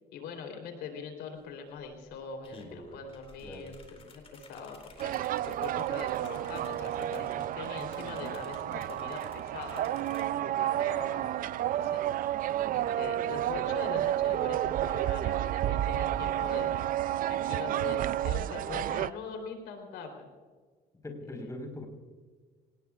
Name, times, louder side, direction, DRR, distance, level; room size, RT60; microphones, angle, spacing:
voice 1, 0.1-3.7 4.0-5.1 5.5-12.0 12.7-16.8 17.3-20.3 21.3-21.5, left 5 dB, 85° left, 4 dB, 3.7 m, -42 dB
sound 1, 1.4-1.5 1.8-10.3, left 3 dB, 35° left, 4.1 m, -54 dB
voice 2, 3.4-3.7 21.0-21.9, left 1 dB, 20° left, 2 dB, 4.5 m, -41 dB
sound 2, 5.0-19.1, right 13 dB, 55° right, 0.5 m, -31 dB
26.0 x 19.5 x 2.5 m, 1.5 s
cardioid pair, 110°, 17 cm